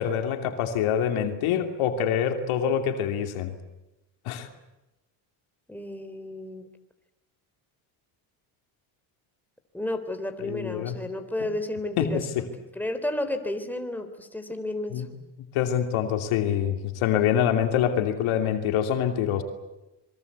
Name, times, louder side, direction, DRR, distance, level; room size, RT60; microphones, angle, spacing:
voice 1, 0.0-3.5 4.2-4.5 10.4-10.9 12.0-12.5 14.9-15.1 15.5-19.4, left 9 dB, 80° left, 6 dB, 3.0 m, -25 dB
voice 2, 5.7-6.7 9.7-12.5 12.7-15.1, left 1 dB, 5° left, 6 dB, 3.6 m, -32 dB
26.0 x 23.0 x 8.3 m, 0.99 s
supercardioid pair, 90°, 49 cm